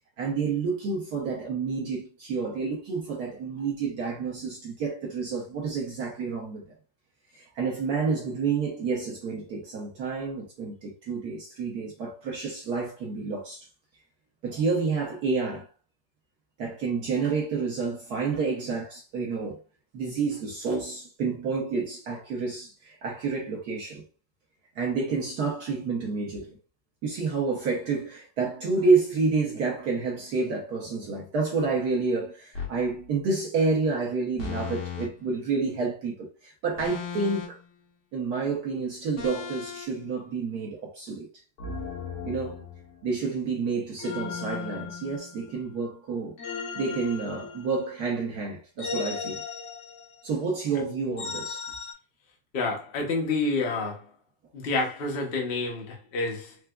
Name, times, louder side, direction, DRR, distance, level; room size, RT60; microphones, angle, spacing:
voice 1, 0.2-6.6 7.3-13.7 14.4-15.7 16.6-19.6 19.9-24.0 24.8-26.6 27.0-37.6 38.1-41.3 42.2-42.7 43.0-46.4 46.7-49.4 50.2-51.6, right 4 dB, 65° right, 1.0 m, -29 dB
sound 1, 32.5-32.8 34.4-35.1 36.8-37.7 39.2-39.9 41.6-43.0 44.0-45.6 46.4-48.0 48.8-50.3 51.2-51.9, left 6 dB, 90° left, 2.0 m, -36 dB
voice 2, 52.5-54.1 54.5-56.6, left 3 dB, 70° left, 0.5 m, -28 dB
4.6 x 2.1 x 2.3 m
omnidirectional pair, 2.3 m